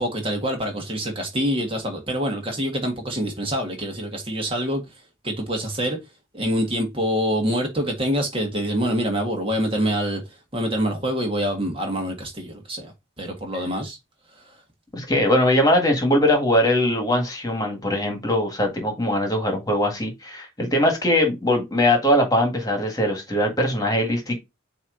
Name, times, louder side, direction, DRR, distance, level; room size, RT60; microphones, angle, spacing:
voice 1, 0.0-4.8 5.2-6.0 6.3-10.2 10.5-12.9 13.2-14.0, equal, 30° right, 1.7 m, -25 dB
voice 2, 14.9-24.4, left 1 dB, 20° left, 1.8 m, -21 dB
8.6 x 3.0 x 3.9 m
head